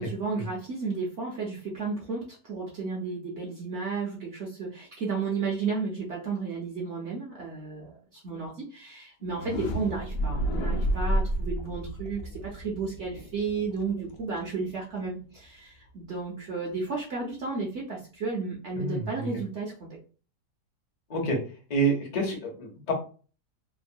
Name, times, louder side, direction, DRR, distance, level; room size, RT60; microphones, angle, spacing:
voice 1, 0.0-20.0, right 4 dB, 60° right, -2 dB, 0.8 m, -33 dB
sound 1, 9.2-15.1, equal, 70° left, 0.9 m, -31 dB
voice 2, 21.7-22.9, right 2 dB, 40° left, 0 dB, 0.5 m, -27 dB
3.0 x 2.0 x 2.5 m, 0.37 s
omnidirectional pair, 1.8 m